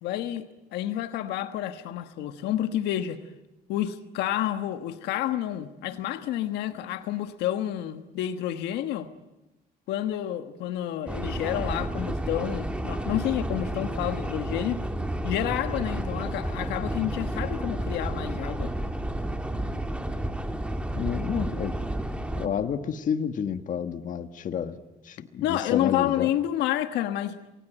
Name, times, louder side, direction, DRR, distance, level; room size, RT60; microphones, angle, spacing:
voice 1, 0.0-3.2 3.7-9.1 9.9-14.8 15.2-18.7 25.4-27.4, left 12 dB, 85° left, 1.4 m, -29 dB
sound 1, 11.1-22.5, right 1 dB, 5° right, 2.3 m, -31 dB
voice 2, 21.0-21.7 22.3-24.8 25.0-26.3, left 8 dB, 50° left, 1.5 m, -30 dB
28.5 x 21.0 x 9.0 m
cardioid pair, 110°, 17 cm